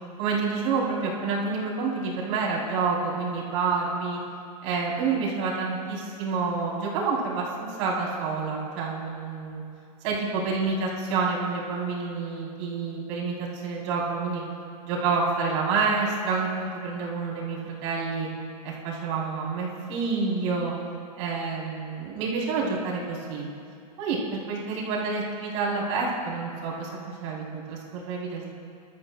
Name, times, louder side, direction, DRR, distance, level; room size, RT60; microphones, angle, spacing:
voice 1, 0.2-4.2 4.6-9.6 10.0-14.4 14.8-18.3 18.6-20.7 21.2-23.5 24.0-28.5, right 4 dB, 50° right, -4 dB, 3.7 m, -28 dB
23.0 x 12.5 x 2.3 m, 2.4 s
supercardioid pair, 155°, 19 cm